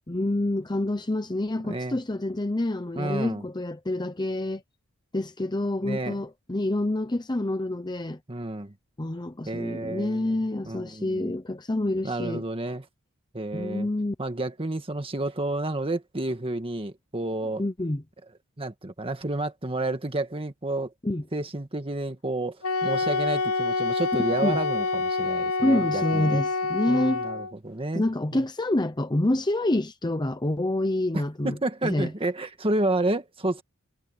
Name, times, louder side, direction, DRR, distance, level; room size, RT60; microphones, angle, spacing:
voice 1, 0.1-4.6 5.1-8.2 9.0-12.4 13.5-14.1 17.6-18.0 21.0-21.2 24.4-24.6 25.6-27.2 27.9-31.6 31.8-32.1, left 1 dB, 20° left, 0.8 m, -27 dB
voice 2, 1.6-2.0 2.9-3.4 5.8-6.2 8.3-8.7 9.5-10.3 10.6-11.3 12.0-12.9 13.3-13.9 14.2-17.6 18.6-20.9 21.3-26.4 26.9-28.0 28.3-28.4 31.1-33.6, right 2 dB, 25° right, 1.7 m, -30 dB
Wind instrument woodwind instrument, 22.6-27.5, left 3 dB, 85° left, 1.0 m, -27 dB
head